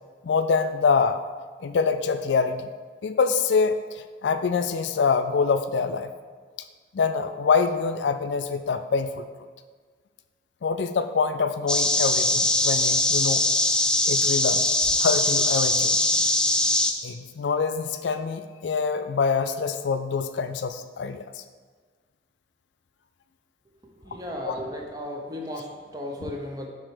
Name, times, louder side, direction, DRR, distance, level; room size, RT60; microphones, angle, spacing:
voice 1, 0.2-1.2 1.6-2.7 3.0-6.1 6.9-9.3 10.6-13.5 14.1-14.6 15.0-16.0 17.0-21.4 24.4-24.6, left 5 dB, 75° left, 10 dB, 0.4 m, -25 dB
sound 1, 11.7-16.9, left 1 dB, 5° left, 0.3 m, -22 dB
voice 2, 24.0-26.7, left 1 dB, 20° right, 0 dB, 0.8 m, -35 dB
7.3 x 3.2 x 4.8 m, 1.5 s
head